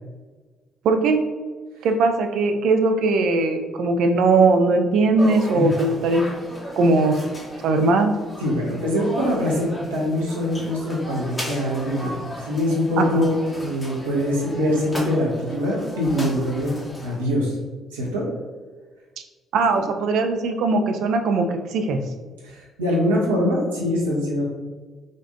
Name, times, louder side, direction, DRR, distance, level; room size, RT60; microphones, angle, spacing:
voice 1, 0.8-1.2 1.8-6.3 6.8-7.2 7.6-8.1 13.0-13.3 19.5-22.0, right 3 dB, 60° right, 5 dB, 0.4 m, -19 dB
sound 1, 5.2-17.2, left 1 dB, 25° left, 1.1 m, -36 dB
voice 2, 8.4-13.3 13.6-17.6 17.9-18.3 19.7-19.8 22.4-24.4, left 1 dB, 80° right, -4 dB, 0.9 m, -23 dB
5.1 x 2.5 x 2.6 m, 1.4 s
figure-of-eight pair, 45°, 0 cm